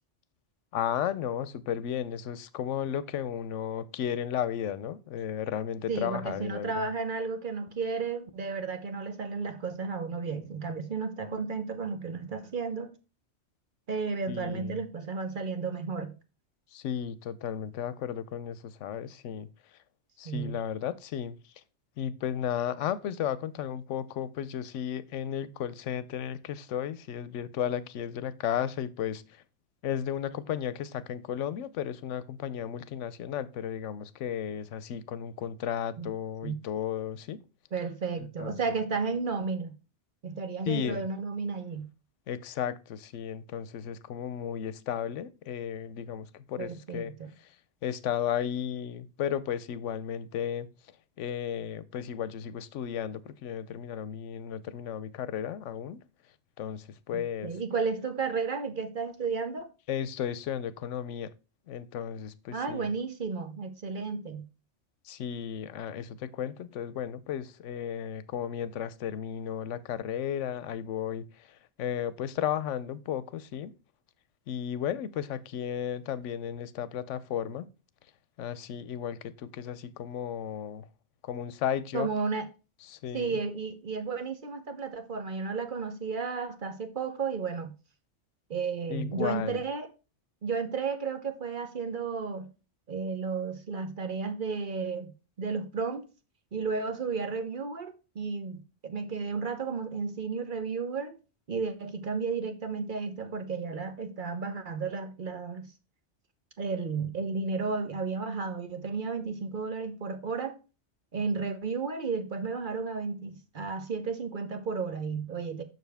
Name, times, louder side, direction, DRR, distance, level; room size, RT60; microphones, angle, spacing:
voice 1, 0.7-6.9 14.3-14.8 16.7-19.5 20.2-21.4 22.0-29.2 29.8-37.4 38.2-38.5 40.7-41.0 42.3-47.1 47.8-50.7 51.2-56.0 56.6-57.5 59.9-61.3 61.7-62.9 65.1-71.2 71.8-73.7 74.5-77.7 78.4-80.8 81.2-82.1 82.9-83.3 88.9-89.6, left 9 dB, 90° left, 0.9 m, -34 dB
voice 2, 5.9-13.0 13.9-16.2 20.2-20.6 36.0-36.1 36.4-36.6 37.7-39.8 40.2-41.9 46.6-47.3 57.1-59.7 62.5-64.5 81.9-82.5 83.1-87.7 88.5-89.9 90.4-92.5 92.9-96.0 96.5-101.2 101.5-105.7 106.6-110.6 111.1-115.6, right 5 dB, 50° right, 0.9 m, -33 dB
6.8 x 6.1 x 3.4 m
omnidirectional pair, 1.2 m